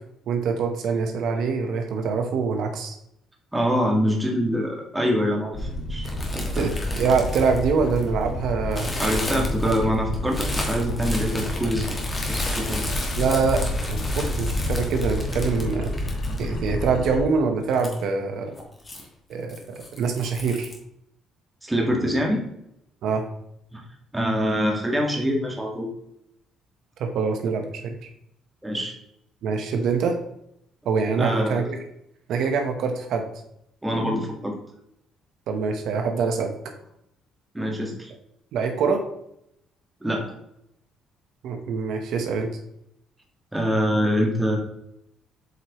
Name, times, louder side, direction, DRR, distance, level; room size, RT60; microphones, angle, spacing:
voice 1, 0.3-2.9 6.5-6.7 7.0-8.9 9.3-9.9 13.2-15.9 16.4-18.5 19.3-20.7 23.0-23.3 27.0-27.9 29.4-30.2 30.8-31.8 32.3-33.3 35.5-36.5 38.5-39.0 41.4-42.5, right 5 dB, 70° right, 4 dB, 1.0 m, -24 dB
voice 2, 3.5-6.1 6.3-6.7 9.0-12.0 12.3-12.8 16.3-16.6 21.6-22.4 23.7-23.8 24.1-25.9 28.6-28.9 31.1-31.7 33.8-34.6 37.5-38.1 40.0-40.3 43.5-44.6, equal, 5° right, -1 dB, 1.6 m, -25 dB
sound 1, 5.5-17.2, left 1 dB, 55° left, 1.3 m, -29 dB
sound 2, 6.0-8.2 8.7-16.7 17.0-17.1 17.7-18.0 18.5-19.1 19.5-20.8, left 1 dB, 20° left, 1.5 m, -34 dB
8.0 x 4.7 x 3.0 m, 0.77 s
cardioid pair, 130°, 0 cm